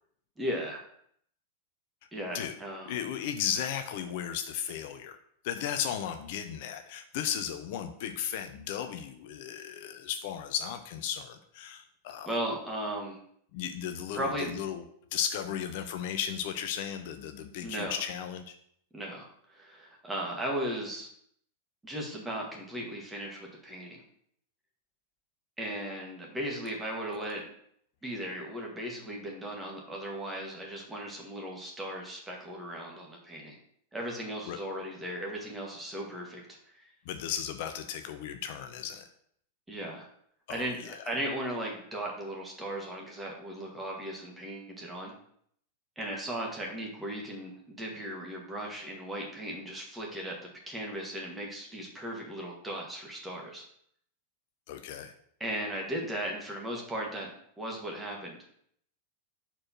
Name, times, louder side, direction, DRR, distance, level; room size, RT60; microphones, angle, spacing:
voice 1, 0.4-0.8 2.1-2.9 12.2-13.2 14.1-14.5 17.6-18.0 18.9-21.1 21.8-24.0 25.6-27.5 28.0-33.6 33.9-36.4 36.7-36.9 39.7-40.1 40.5-45.1 45.9-53.6 55.4-57.3 57.6-58.4, right 1 dB, 10° right, -2 dB, 1.8 m, -37 dB
voice 2, 2.8-5.2 5.4-12.3 13.5-14.8 15.1-18.6 27.1-27.3 34.5-34.6 37.1-39.0 40.5-41.0 54.7-55.1, left 9 dB, 50° left, 8 dB, 0.5 m, -35 dB
4.5 x 4.2 x 5.8 m, 0.67 s
figure-of-eight pair, 90°, 0 cm